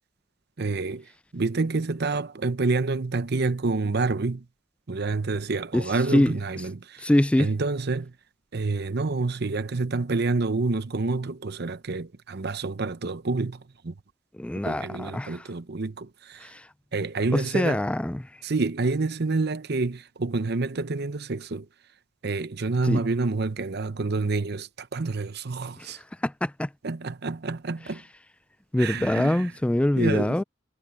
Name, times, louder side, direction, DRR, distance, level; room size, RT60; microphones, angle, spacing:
voice 1, 0.6-1.1 1.3-4.4 4.9-7.1 7.4-8.1 8.5-13.9 14.6-16.5 16.9-17.8 18.4-21.7 22.2-26.0 26.8-28.0 28.8-29.5 30.0-30.4, right 3 dB, 55° right, 0.8 m, -28 dB
voice 2, 7.0-7.5 14.4-15.4 16.4-16.6 17.3-18.3 22.9-23.0 26.2-26.7 28.7-30.4, left 1 dB, 5° left, 0.3 m, -24 dB
head